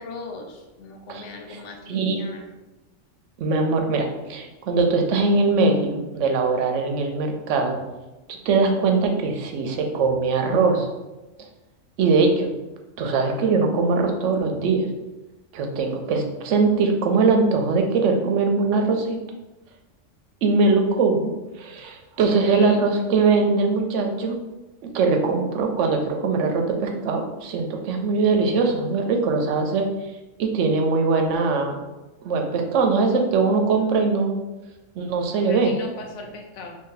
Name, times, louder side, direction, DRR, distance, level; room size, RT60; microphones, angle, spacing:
voice 1, 0.0-2.6 22.2-23.0 35.4-36.8, left 3 dB, 80° left, 3 dB, 0.9 m, -39 dB
voice 2, 3.4-7.8 8.5-10.9 12.0-12.5 13.0-14.8 15.5-19.2 20.4-21.3 21.6-24.4 24.9-29.8 30.4-31.7 32.2-34.4 34.9-35.7, right 4 dB, 80° right, 3 dB, 0.9 m, -21 dB
2.7 x 2.7 x 3.8 m, 1.0 s
omnidirectional pair, 1.3 m